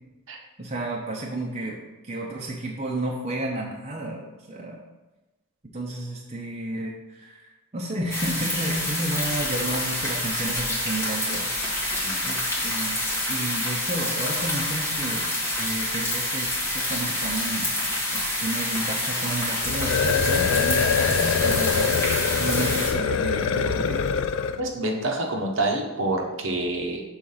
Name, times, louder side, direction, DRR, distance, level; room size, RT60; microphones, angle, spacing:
voice 1, 0.6-4.8 5.7-12.0 12.2-13.0 13.3-15.3 15.6-16.5 16.7-22.1 22.3-24.0, right 1 dB, 30° right, -2 dB, 0.7 m, -32 dB
sound 1, 8.1-22.9, left 1 dB, 10° left, 1.5 m, -27 dB
sound 2, 19.6-24.6, left 6 dB, 55° left, 0.3 m, -24 dB
voice 2, 24.6-27.0, right 2 dB, 60° right, 1 dB, 1.0 m, -27 dB
6.3 x 3.8 x 5.6 m, 1.1 s
head